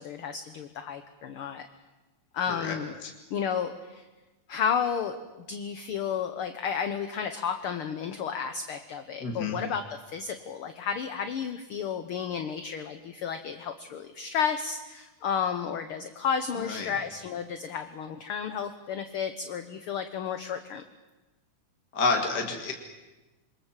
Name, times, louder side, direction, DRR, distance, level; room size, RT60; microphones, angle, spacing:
voice 1, 0.0-1.7 2.3-2.9 3.3-4.1 4.5-5.1 5.5-20.8, left 7 dB, 60° left, 8 dB, 1.6 m, -32 dB
voice 2, 9.2-9.6 16.6-16.9 21.9-22.7, left 4 dB, 35° left, 2 dB, 2.4 m, -29 dB
27.0 x 23.5 x 7.4 m, 1.1 s
omnidirectional pair, 3.4 m